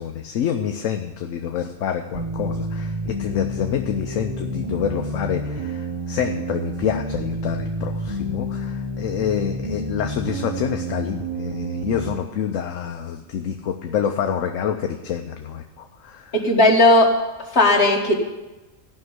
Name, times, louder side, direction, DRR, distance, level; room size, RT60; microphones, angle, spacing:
voice 1, 0.0-16.4, left 8 dB, 75° left, 5 dB, 1.1 m, -27 dB
sound 1, 2.1-12.1, right 1 dB, 25° right, 0.9 m, -29 dB
voice 2, 16.3-17.1 17.5-18.1, left 2 dB, 55° left, 1 dB, 2.0 m, -15 dB
14.0 x 5.8 x 9.5 m, 1.1 s
omnidirectional pair, 1.4 m